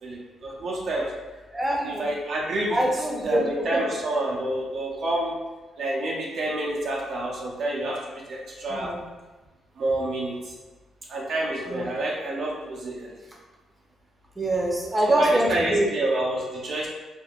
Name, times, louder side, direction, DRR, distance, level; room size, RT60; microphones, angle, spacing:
voice 1, 0.0-1.1 1.8-2.8 3.2-5.3 5.8-8.9 9.8-10.6 11.1-13.2 15.2-16.9, right 1 dB, 65° right, -3 dB, 0.6 m, -28 dB
voice 2, 1.5-2.0 2.7-3.4 3.7-3.8 8.7-9.0 11.7-11.9 14.4-15.9, right 1 dB, 15° right, -2 dB, 0.7 m, -24 dB
3.4 x 2.1 x 2.4 m, 1.2 s
supercardioid pair, 55°, 0 cm